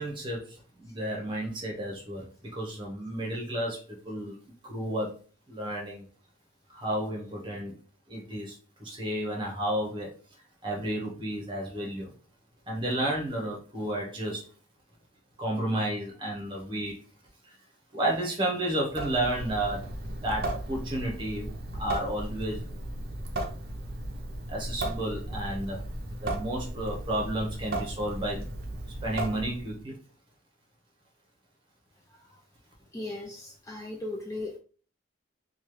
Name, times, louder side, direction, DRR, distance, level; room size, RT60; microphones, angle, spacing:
voice 1, 0.0-4.3 4.6-5.2 5.5-6.0 6.7-7.7 8.1-10.1 10.6-12.1 12.7-14.4 15.4-17.0 17.9-19.9 20.2-21.5 21.8-22.7 24.5-25.8 26.2-28.5 29.0-30.0, right 1 dB, 25° right, 0.9 m, -32 dB
Water tap faucet / Sink (filling or washing) / Drip, 18.9-29.8, right 1 dB, 50° right, 0.5 m, -36 dB
voice 2, 32.9-34.6, left 2 dB, 15° left, 0.3 m, -37 dB
3.0 x 2.3 x 3.1 m
head